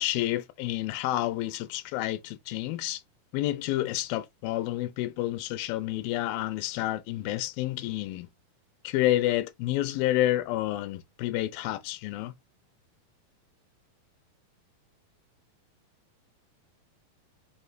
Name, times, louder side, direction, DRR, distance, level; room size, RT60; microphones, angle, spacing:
voice 1, 0.0-3.0 3.3-8.3 8.8-12.3, left 15 dB, 80° left, 2.3 m, -29 dB
5.5 x 2.4 x 3.2 m
omnidirectional pair, 4.2 m